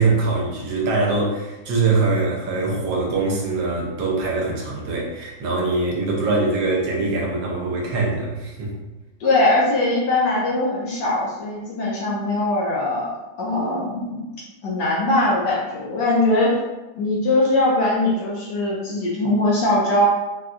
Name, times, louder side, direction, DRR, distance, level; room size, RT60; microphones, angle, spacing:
voice 1, 0.0-8.7, right 3 dB, 75° right, -3 dB, 1.4 m, -23 dB
voice 2, 9.2-13.1 13.4-14.3 14.6-16.5 16.9-20.1, left 2 dB, 70° left, -4 dB, 1.1 m, -21 dB
4.1 x 2.3 x 2.4 m, 1.1 s
omnidirectional pair, 2.2 m